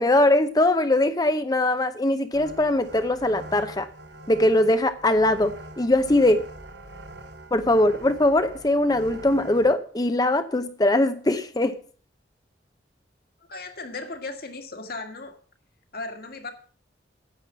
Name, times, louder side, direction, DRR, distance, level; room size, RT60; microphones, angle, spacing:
voice 1, 0.0-3.9 4.3-6.4 7.5-11.8, left 1 dB, 20° left, 0.7 m, -21 dB
sound 1, 2.3-9.7, right 1 dB, 65° right, 1.5 m, -43 dB
voice 2, 13.5-15.4 15.9-16.5, left 3 dB, 55° left, 2.0 m, -36 dB
9.9 x 7.7 x 8.1 m
head